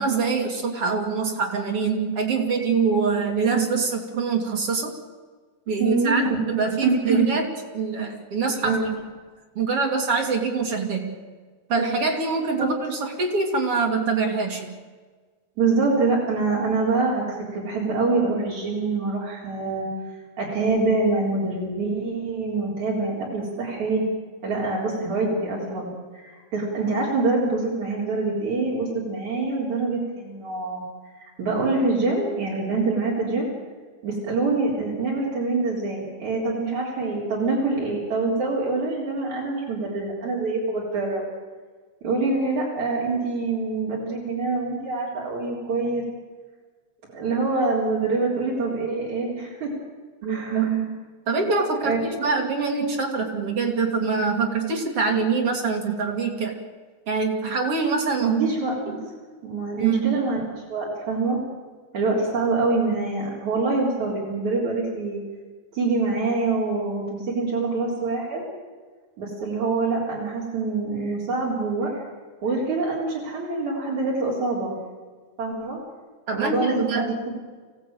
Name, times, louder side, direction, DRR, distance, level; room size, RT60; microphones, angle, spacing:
voice 1, 0.0-4.9 5.7-7.5 7.7-8.8 9.6-11.1 11.7-14.8 50.2-56.6 57.1-58.4 58.9-59.1 59.8-60.2 76.3-77.1, right 4 dB, 50° right, 2 dB, 3.2 m, -24 dB
voice 2, 5.8-6.5 6.8-7.3 8.6-8.9 12.6-12.7 15.6-19.9 20.4-24.0 24.4-30.8 31.4-33.5 34.0-41.2 42.0-46.0 47.1-49.7 50.3-50.6 51.8-52.0 58.2-58.7 59.4-60.4 60.7-61.4 61.9-65.2 65.7-68.4 69.2-72.0 72.4-74.7 75.4-75.8 76.3-77.3, right 3 dB, 75° right, -5 dB, 5.6 m, -25 dB
24.5 x 16.5 x 9.1 m, 1.5 s
omnidirectional pair, 3.4 m